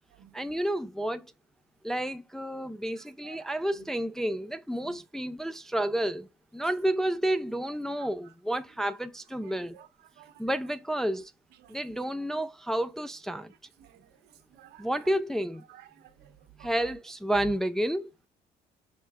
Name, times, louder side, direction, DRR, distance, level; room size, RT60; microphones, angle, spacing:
voice 1, 0.3-1.3 1.8-9.8 10.4-11.3 11.7-13.5 14.8-15.6 16.6-18.1, right 1 dB, 5° left, 0.3 m, -30 dB
voice 2, 3.0-3.9 4.8-5.0 9.4-9.9 10.2-10.4 11.6-11.8 13.8-14.1 14.5-14.9 15.7-16.7, right 11 dB, 75° right, 0.9 m, -54 dB
5.7 x 3.1 x 2.3 m
cardioid pair, 110°, 17 cm